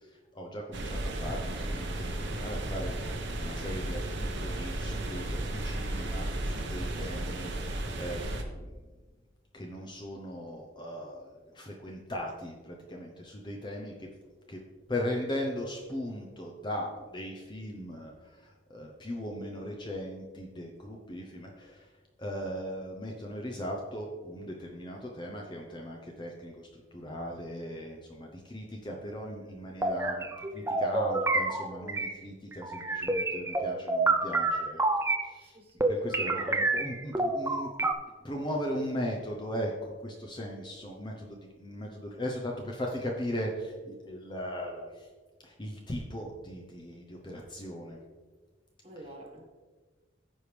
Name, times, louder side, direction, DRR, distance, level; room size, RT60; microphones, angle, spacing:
voice 1, 0.0-8.3 9.5-14.1 14.5-14.6 14.9-21.9 22.2-30.2 30.5-34.8 35.2-35.6 35.9-37.9 38.2-45.1 45.4-48.0 49.0-49.1, equal, 25° left, 0 dB, 0.8 m, -38 dB
sound 1, 0.7-8.4, right 1 dB, 65° right, 1.1 m, -34 dB
sound 2, 29.8-32.1 32.5-35.3 35.8-37.9, right 2 dB, 15° right, 0.4 m, -28 dB
voice 2, 35.4-36.5 48.8-49.4, right 1 dB, 30° right, 1 dB, 1.4 m, -48 dB
14.5 x 4.9 x 3.4 m, 1.4 s
head